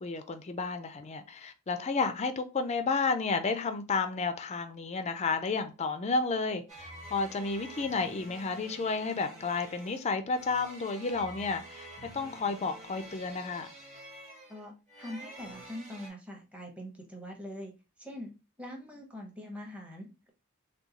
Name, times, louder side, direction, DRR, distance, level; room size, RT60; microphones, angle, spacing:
voice 1, 0.0-13.7, left 4 dB, 30° left, 0.3 m, -32 dB
sound 1, 6.7-16.1, right 1 dB, 30° right, 1.1 m, -48 dB
voice 2, 15.0-17.7 18.0-18.3 18.6-20.3, left 1 dB, 5° right, 0.7 m, -43 dB
3.7 x 2.2 x 2.8 m
head